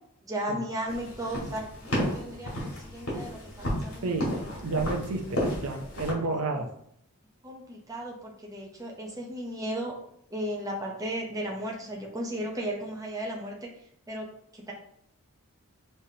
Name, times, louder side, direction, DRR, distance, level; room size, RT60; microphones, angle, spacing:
voice 1, 0.3-4.5 6.6-6.7 7.4-9.9 10.3-13.7 14.1-14.3 14.5-14.7, right 1 dB, 15° right, -2 dB, 0.7 m, -35 dB
sound 1, 0.9-6.1, equal, 65° left, 1.8 m, -33 dB
voice 2, 4.6-6.7, right 3 dB, 75° right, 4 dB, 0.6 m, -30 dB
5.4 x 3.3 x 2.8 m, 0.70 s
head